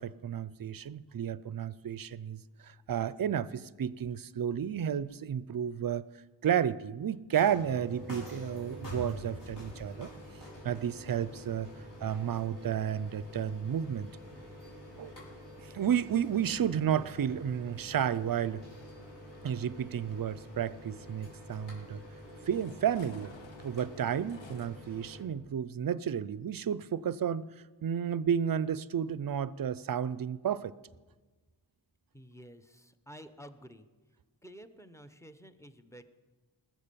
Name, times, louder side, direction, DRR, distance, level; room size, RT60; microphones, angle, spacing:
voice 1, 0.0-6.0 6.4-10.1 10.6-11.7 12.0-14.1 15.0-15.1 15.6-18.6 19.4-22.0 22.5-23.3 23.6-27.5 27.8-30.7, right 8 dB, 50° right, 18 dB, 0.5 m, -32 dB
sound 1, 7.3-25.2, equal, 60° left, 5.0 m, -47 dB
sound 2, 17.9-24.7, left 3 dB, 80° left, 1.3 m, -57 dB
voice 2, 32.1-33.9 34.4-36.1, equal, 5° left, 9 dB, 0.8 m, -51 dB
20.0 x 7.5 x 6.8 m, 1.3 s
wide cardioid pair, 90°, 45 cm